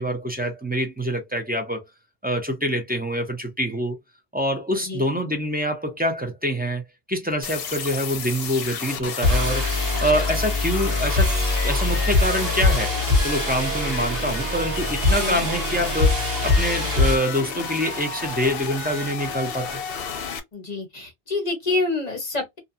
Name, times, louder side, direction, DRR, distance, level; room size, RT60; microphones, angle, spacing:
voice 1, 0.0-1.8 2.2-4.0 4.3-9.7 10.0-11.4 11.6-19.8, equal, 10° right, 0.5 m, -26 dB
voice 2, 4.8-5.1 15.2-15.5 20.5-22.6, left 3 dB, 40° left, 1.0 m, -27 dB
sound 1, 7.4-20.4, left 6 dB, 70° left, 0.8 m, -32 dB
sound 2, 9.2-17.2, left 2 dB, 45° right, 1.1 m, -23 dB
2.5 x 2.3 x 2.6 m
omnidirectional pair, 1.0 m